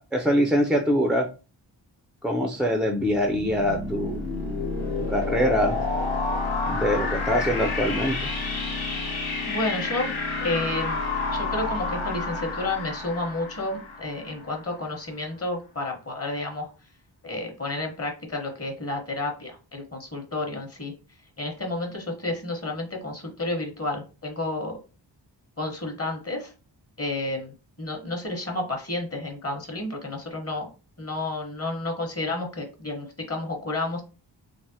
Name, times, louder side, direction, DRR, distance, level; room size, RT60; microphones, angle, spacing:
voice 1, 0.1-1.3 2.2-4.2 5.0-5.8 6.7-8.3, equal, ahead, 3 dB, 0.3 m, -24 dB
sound 1, 3.2-14.7, left 3 dB, 80° left, 1.0 m, -29 dB
voice 2, 9.5-11.0 11.3-16.7 17.2-20.9 21.4-24.8 25.6-26.5 27.0-30.7 31.0-34.0, left 2 dB, 30° left, 2 dB, 0.9 m, -31 dB
3.3 x 2.0 x 2.7 m, 0.33 s
cardioid pair, 65°, 47 cm